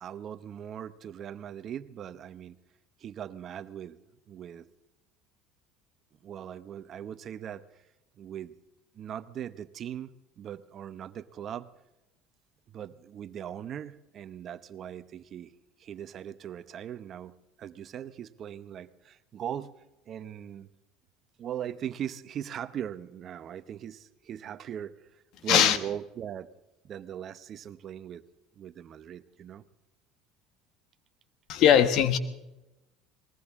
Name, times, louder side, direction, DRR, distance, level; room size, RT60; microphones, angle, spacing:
voice 1, 0.0-2.6 3.0-4.0 4.3-4.7 6.2-7.6 8.2-8.5 8.9-11.7 12.7-15.5 15.8-19.7 20.1-20.7 21.4-24.9 25.4-26.5 26.8-28.2 28.6-29.6, right 9 dB, 45° right, 14 dB, 0.9 m, -39 dB
voice 2, 31.5-32.2, left 9 dB, 60° left, 12 dB, 1.5 m, -20 dB
20.5 x 19.0 x 3.7 m, 0.96 s
supercardioid pair, 100°, 0 cm